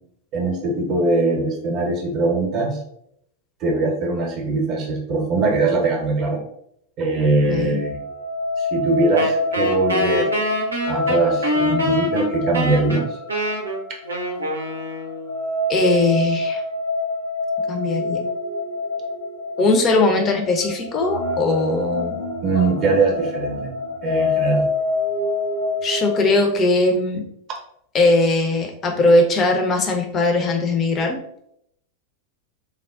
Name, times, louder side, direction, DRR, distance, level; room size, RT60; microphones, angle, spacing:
voice 1, 0.3-2.8 3.6-6.4 7.0-8.0 8.6-10.3 10.9-13.1 22.4-23.7 24.0-24.7, right 3 dB, 35° right, 1 dB, 0.7 m, -21 dB
voice 2, 7.4-7.8 15.7-16.6 17.7-18.3 19.6-22.2 25.8-27.3 27.9-31.2, left 2 dB, 25° left, 3 dB, 0.6 m, -19 dB
sound 1, 7.8-26.2, left 2 dB, 70° left, 1.2 m, -26 dB
Wind instrument woodwind instrument, 9.2-15.5, equal, 75° right, 0.5 m, -25 dB
3.5 x 2.1 x 2.3 m, 0.73 s
figure-of-eight pair, 90°, 0 cm